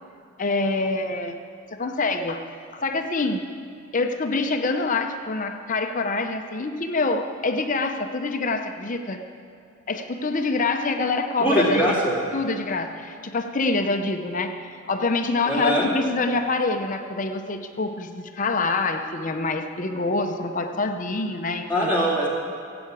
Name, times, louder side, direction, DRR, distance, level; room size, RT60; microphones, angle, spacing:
voice 1, 0.4-1.4 1.7-2.5 2.7-3.4 3.9-9.2 9.9-12.0 12.3-21.9, left 3 dB, 40° left, 6 dB, 0.7 m, -26 dB
voice 2, 11.4-12.1 15.5-15.8 21.7-22.3, equal, 10° right, -7 dB, 2.3 m, -21 dB
15.5 x 7.8 x 8.4 m, 2.3 s
head